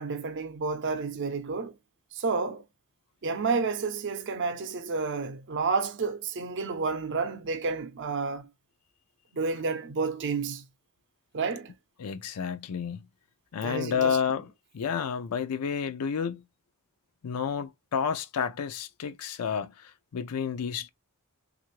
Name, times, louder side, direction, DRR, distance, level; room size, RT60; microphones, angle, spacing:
voice 1, 0.0-1.7 2.1-2.6 3.2-8.5 9.3-10.6 11.3-11.7 13.6-14.2, right 4 dB, 55° right, 0.6 m, -30 dB
voice 2, 12.0-13.0 13.5-14.5 14.7-16.4 17.2-20.9, left 7 dB, 90° left, 0.5 m, -30 dB
3.2 x 2.5 x 3.0 m
head